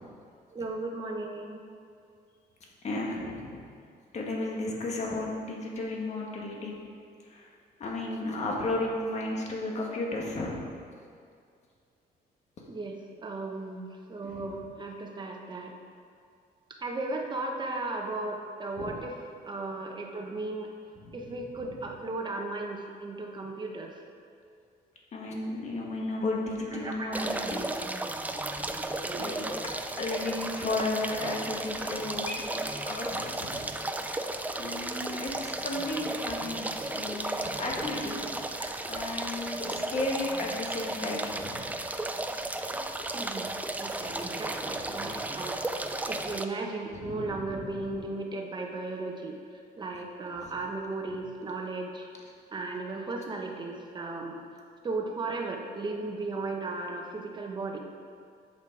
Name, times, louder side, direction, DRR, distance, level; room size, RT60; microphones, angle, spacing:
voice 1, 0.5-1.6 12.7-15.7 16.8-19.1 19.4-20.7 21.1-23.9 26.7-27.2 29.0-29.3 38.6-38.8 42.7-42.9 43.1-43.5 43.8-49.4 49.8-52.1 52.5-54.3 54.8-57.8, right 3 dB, 25° right, 1 dB, 1.1 m, -36 dB
voice 2, 2.8-3.7 4.1-6.7 7.2-7.5 7.8-10.6 14.2-14.5 18.8-19.0 21.0-21.4 25.1-27.6 29.1-29.5 30.0-33.7 34.6-38.2 38.9-41.7 44.6-45.2 46.9-47.8 50.4-50.5 51.1-51.2, left 2 dB, 45° left, -1 dB, 1.7 m, -34 dB
sound 1, 27.1-46.5, right 2 dB, 10° right, 0.4 m, -34 dB
10.5 x 8.0 x 4.7 m, 2.3 s
cardioid pair, 145°, 17 cm